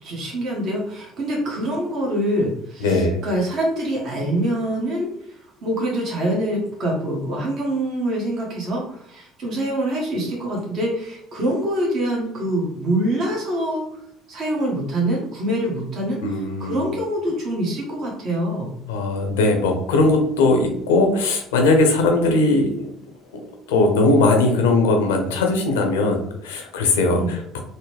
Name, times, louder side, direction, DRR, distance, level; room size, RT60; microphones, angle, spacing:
voice 1, 0.0-5.1 5.6-13.8 14.3-16.2 16.6-18.7 27.1-27.3, right 1 dB, 55° right, -2 dB, 1.2 m, -25 dB
voice 2, 2.8-3.2 16.2-16.9 18.9-22.9 23.7-27.6, left 2 dB, 85° left, 3 dB, 0.6 m, -19 dB
3.8 x 2.1 x 3.3 m, 0.74 s
hypercardioid pair, 65°, 0 cm